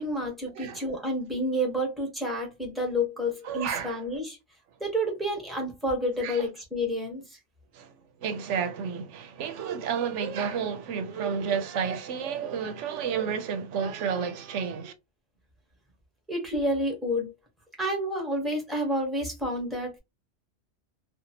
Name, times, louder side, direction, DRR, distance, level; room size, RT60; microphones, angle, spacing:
voice 1, 0.0-4.4 4.8-7.4 16.3-17.3 17.8-20.0, equal, ahead, 0.9 m, -29 dB
voice 2, 3.4-4.0 6.2-6.4 7.7-14.9, right 7 dB, 80° right, 0.9 m, -31 dB
2.6 x 2.4 x 2.7 m
omnidirectional pair, 1.2 m